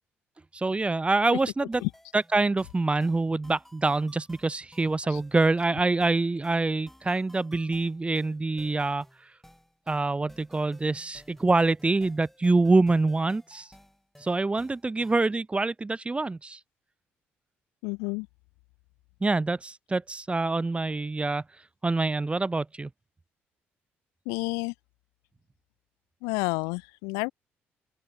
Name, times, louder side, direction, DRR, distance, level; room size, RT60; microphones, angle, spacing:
voice 1, 0.5-1.8 2.1-9.0 9.9-13.7 14.2-16.6 19.2-21.4 21.8-22.9, right 3 dB, 20° right, 0.6 m, -25 dB
sound 1, 1.7-15.3, left 1 dB, 5° left, 6.2 m, -56 dB
voice 2, 17.8-18.3 24.3-24.7 26.2-27.3, left 31 dB, 80° left, 0.7 m, -30 dB
open air
hypercardioid pair, 50°, 6 cm